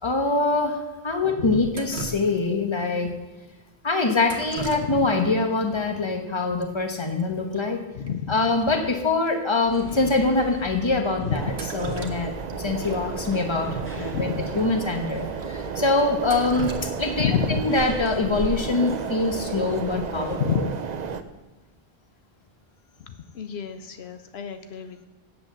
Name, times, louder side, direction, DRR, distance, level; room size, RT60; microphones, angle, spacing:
voice 1, 0.0-3.1 3.8-7.8 8.3-14.3 14.6-20.7, left 3 dB, 25° left, 5 dB, 1.2 m, -24 dB
Drip, 1.7-2.7 4.2-5.3 5.6-5.7 6.6-6.7 7.0-7.2 7.5-7.6 8.1-8.2 8.6-8.7 9.3-9.4 10.1-10.2 11.3-12.6 12.9-13.0 14.3-14.4 14.9-15.0 15.4-15.5 16.0-17.6 19.6-19.9 20.3-20.7, right 2 dB, 80° right, 1.3 m, -37 dB
voice 2, 8.0-8.4 11.2-11.5 14.1-14.3 17.2-17.6 20.4-20.7 23.1-25.1, left 7 dB, 80° left, 9 dB, 1.0 m, -28 dB
sound 1, 9.7-20.4, equal, 10° left, 2.2 m, -42 dB
sound 2, 11.3-21.2, right 6 dB, 50° right, 0.7 m, -32 dB
8.4 x 7.8 x 7.2 m, 1.2 s
omnidirectional pair, 1.0 m